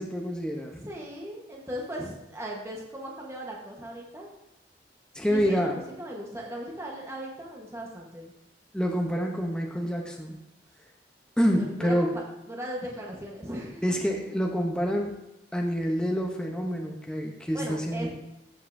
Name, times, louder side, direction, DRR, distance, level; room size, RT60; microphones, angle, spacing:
voice 1, 0.0-0.8 5.1-5.7 8.7-10.4 11.4-12.2 13.8-15.2 15.5-18.1, equal, 5° left, 1 dB, 0.6 m, -27 dB
voice 2, 0.7-4.3 5.3-8.3 11.5-12.2 12.5-14.1 17.5-18.1, equal, 15° right, -2 dB, 1.1 m, -38 dB
14.0 x 5.4 x 2.6 m, 0.87 s
head